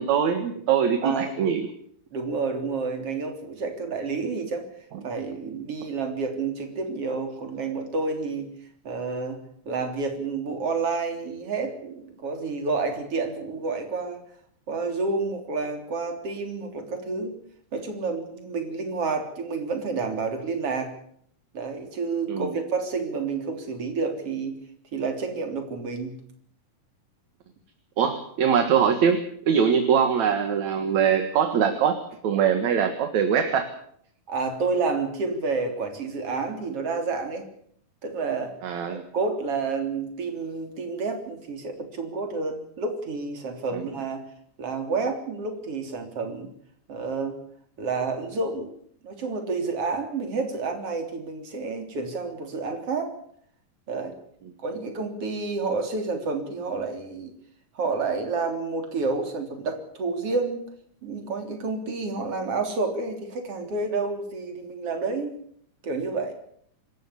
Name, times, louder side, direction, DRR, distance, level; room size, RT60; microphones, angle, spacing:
voice 1, 0.0-1.7 22.3-22.6 28.0-32.0 32.2-33.7 38.6-39.0 43.7-43.8, right 7 dB, 65° right, 7 dB, 2.9 m, -22 dB
voice 2, 1.0-1.4 2.1-4.7 5.0-8.5 8.8-9.4 9.7-14.2 14.7-17.3 17.7-20.9 21.5-24.5 24.9-26.2 34.3-37.5 38.0-38.5 38.9-44.2 44.6-46.5 46.9-47.4 47.8-48.7 49.0-53.1 53.9-54.2 54.6-57.3 57.8-60.6 61.0-65.4 65.8-66.3, right 4 dB, 50° right, 5 dB, 4.3 m, -29 dB
26.0 x 14.5 x 8.4 m, 0.67 s
omnidirectional pair, 3.5 m